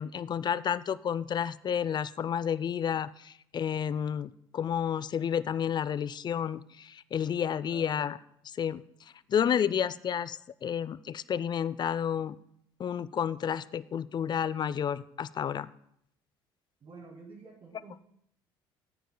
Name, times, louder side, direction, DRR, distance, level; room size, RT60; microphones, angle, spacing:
voice 1, 0.0-8.2 8.4-8.8 9.3-12.4 12.8-15.7, left 8 dB, 35° left, 18 dB, 0.4 m, -31 dB
voice 2, 7.5-8.0 16.8-18.0, right 3 dB, 45° right, -1 dB, 2.4 m, -49 dB
17.5 x 9.1 x 2.2 m, 0.71 s
hypercardioid pair, 60°, 13 cm